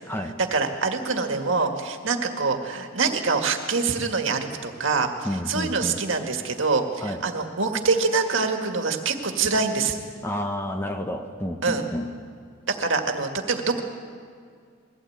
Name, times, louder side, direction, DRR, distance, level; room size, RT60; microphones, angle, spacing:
voice 1, 0.5-5.1 5.5-10.0 11.6-11.8 12.7-13.8, right 4 dB, 65° right, 4 dB, 1.9 m, -25 dB
voice 2, 5.2-6.0 7.0-7.2 10.2-12.1, left 1 dB, 10° left, 5 dB, 1.0 m, -30 dB
22.5 x 16.0 x 8.7 m, 2.2 s
head